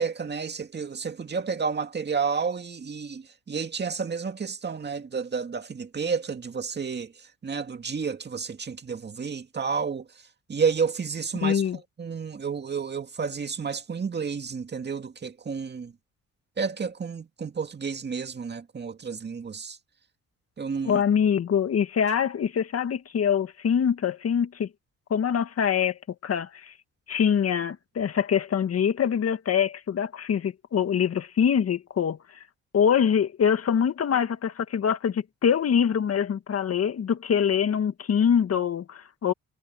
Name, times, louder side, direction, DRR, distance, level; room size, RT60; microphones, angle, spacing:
voice 1, 0.0-7.1 7.4-10.0 10.5-11.6 12.0-15.9 16.6-19.8 20.6-21.0, right 5 dB, 35° right, 2.3 m, -30 dB
voice 2, 11.4-11.8 20.8-24.7 25.1-26.7 27.1-32.2 32.7-39.3, left 8 dB, 50° left, 1.8 m, -24 dB
cardioid pair, 90°, 30 cm